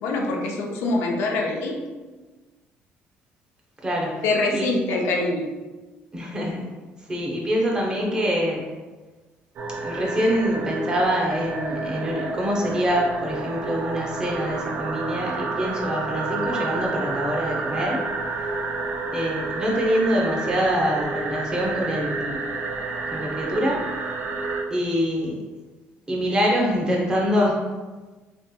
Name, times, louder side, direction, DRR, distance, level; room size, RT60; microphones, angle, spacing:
voice 1, 0.0-1.8 4.2-5.5, left 2 dB, 80° left, 0 dB, 0.6 m, -24 dB
voice 2, 3.8-4.2 4.5-4.7 6.1-6.7 7.1-8.7 9.8-18.0 19.1-22.4 23.1-23.8 24.7-25.4 26.1-27.6, equal, 20° right, -2 dB, 0.7 m, -25 dB
sound 1, 9.6-24.6, right 3 dB, 55° right, 0.4 m, -30 dB
3.5 x 2.7 x 2.2 m, 1.3 s
cardioid pair, 130°, 4 cm